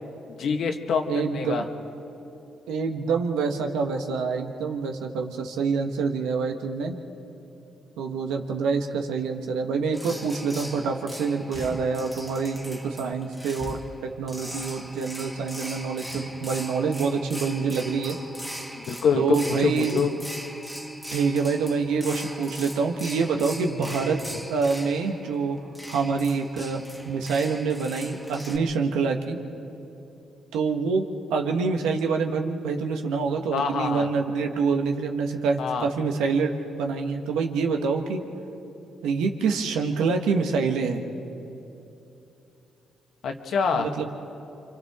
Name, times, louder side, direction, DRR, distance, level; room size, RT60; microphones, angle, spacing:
voice 1, 0.4-1.6 18.7-19.4 19.6-20.1 33.5-34.1 35.6-35.9 43.2-43.9, left 6 dB, 65° left, 5 dB, 1.5 m, -25 dB
voice 2, 1.1-1.6 2.7-7.0 8.0-18.2 19.1-20.0 21.1-24.2 24.5-25.6 25.9-29.4 30.5-31.0 31.3-38.2 39.0-41.0 43.7-44.1, right 5 dB, 90° right, 3 dB, 1.5 m, -26 dB
sound 1, 9.9-28.6, equal, ahead, 1.8 m, -40 dB
29.5 x 25.0 x 3.7 m, 2.9 s
cardioid pair, 90°, 0 cm